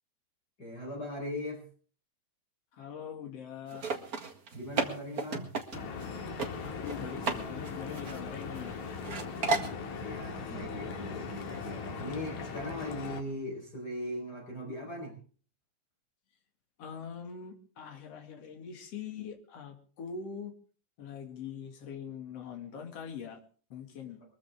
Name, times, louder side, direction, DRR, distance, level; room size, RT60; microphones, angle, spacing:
voice 1, 0.6-1.6 4.5-5.5 9.4-15.2, left 1 dB, 30° left, 0 dB, 4.9 m, -39 dB
voice 2, 2.7-3.9 6.6-8.8 16.8-20.5 21.0-23.4 23.7-24.2, left 7 dB, 55° left, 3 dB, 3.1 m, -43 dB
sound 1, 3.7-6.1 6.4-6.5 6.9-7.4 7.6-8.7 9.0-9.7, right 3 dB, 35° right, 1.7 m, -33 dB
Stream / Boat Water vehicle, 5.7-13.2, left 5 dB, 70° left, 3.0 m, -39 dB
23.0 x 14.5 x 3.6 m, 0.42 s
omnidirectional pair, 3.6 m